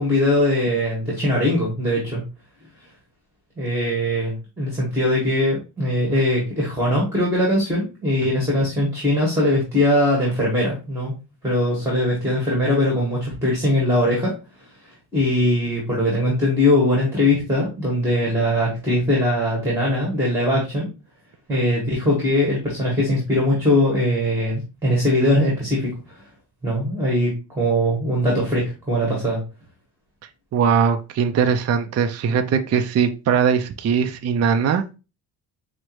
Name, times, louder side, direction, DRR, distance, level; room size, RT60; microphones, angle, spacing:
voice 1, 0.0-2.2 3.6-11.1 11.4-14.3 14.6-20.9 21.5-26.2 26.6-29.4, left 1 dB, 5° right, -4 dB, 1.7 m, -21 dB
voice 2, 30.5-34.9, right 7 dB, 35° right, 8 dB, 0.4 m, -20 dB
6.0 x 2.1 x 3.0 m, 0.30 s
cardioid pair, 95°, 45 cm